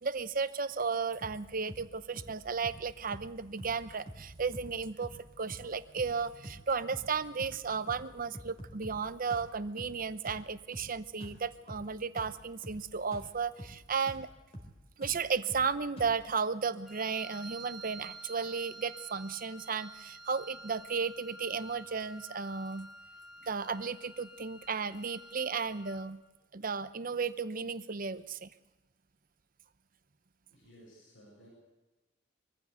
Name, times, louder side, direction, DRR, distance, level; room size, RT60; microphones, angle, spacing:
voice 1, 0.0-14.3 15.0-22.9 23.4-26.2 26.5-28.5, right 5 dB, 45° right, 13 dB, 0.8 m, -34 dB
sound 1, 1.2-1.4 1.7-1.9 2.2-2.4 2.6-2.9 3.1-3.3 3.6-4.3 4.5-4.8 5.0-5.2 5.5-5.7 6.0-6.2 6.4-6.7 6.9-7.1 7.4-7.6 7.9-8.1 8.3-9.0 9.3-9.5 9.8-10.0 10.3-10.5 10.7-10.9 11.2-11.4 11.7-11.9 12.2-12.4 12.6-12.9 13.1-13.3 13.6-13.8 14.1-14.3 14.5-14.8 15.0-15.2 15.5-15.7 16.0-16.2, equal, 35° left, 3.7 m, -46 dB
Wind instrument woodwind instrument, 16.8-26.1, right 2 dB, ahead, 1.9 m, -50 dB
voice 2, 30.5-31.5, equal, 80° left, -2 dB, 6.7 m, -57 dB
23.0 x 14.5 x 8.2 m, 1.1 s
head